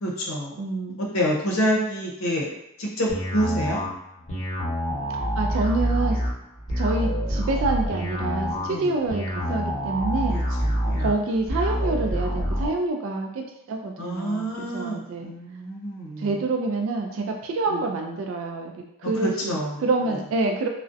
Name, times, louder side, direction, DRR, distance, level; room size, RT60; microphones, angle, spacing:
voice 1, 0.0-0.6 1.0-2.5 2.8-3.8 8.7-8.9 10.3-11.1 14.0-16.4 17.7-17.8 19.1-19.8, equal, 85° left, -2 dB, 0.6 m, -28 dB
voice 2, 0.6-1.0 5.4-6.2 6.8-10.4 11.0-15.3 16.2-18.7 19.0-20.7, right 3 dB, 70° right, 2 dB, 0.3 m, -27 dB
sound 1, 3.1-12.7, equal, 30° left, 0.9 m, -26 dB
2.4 x 2.1 x 2.5 m, 0.80 s
head